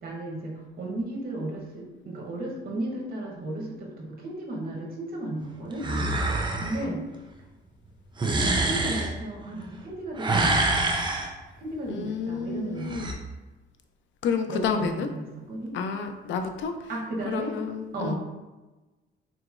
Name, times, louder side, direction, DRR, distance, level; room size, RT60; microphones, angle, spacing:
voice 1, 0.0-5.8 6.6-7.0 8.2-10.8 11.6-13.1 14.5-15.8 16.9-17.5 17.9-18.2, right 2 dB, 50° right, -1 dB, 0.9 m, -34 dB
sound 1, 5.8-6.8 8.2-9.1 10.2-11.3 12.8-13.1, right 2 dB, 25° right, 0.5 m, -25 dB
voice 2, 11.9-13.1 14.2-15.1 15.7-16.7 17.3-18.2, left 6 dB, 70° left, 6 dB, 0.4 m, -30 dB
3.8 x 2.9 x 2.4 m, 1.1 s
cardioid pair, 90°, 20 cm